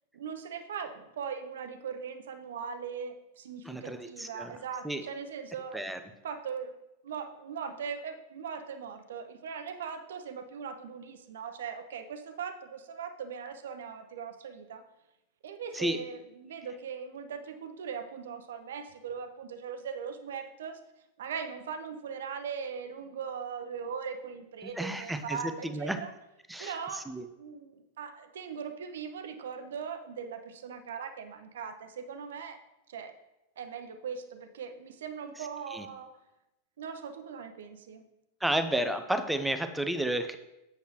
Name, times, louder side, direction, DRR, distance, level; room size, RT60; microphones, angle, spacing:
voice 1, 0.1-5.9 6.2-6.7 7.0-14.8 15.4-20.8 21.2-26.1 26.6-27.1 27.4-32.6 32.9-33.1 33.6-36.1 36.8-38.0, right 6 dB, 60° right, 8 dB, 0.7 m, -40 dB
voice 2, 3.7-4.5 4.8-5.0 5.7-6.0 15.7-16.0 24.6-26.0 26.5-26.7 27.1-27.3 35.7-35.9 38.4-40.4, right 1 dB, 5° right, 8 dB, 0.6 m, -31 dB
8.0 x 6.7 x 3.0 m, 0.92 s
figure-of-eight pair, 90°, 0 cm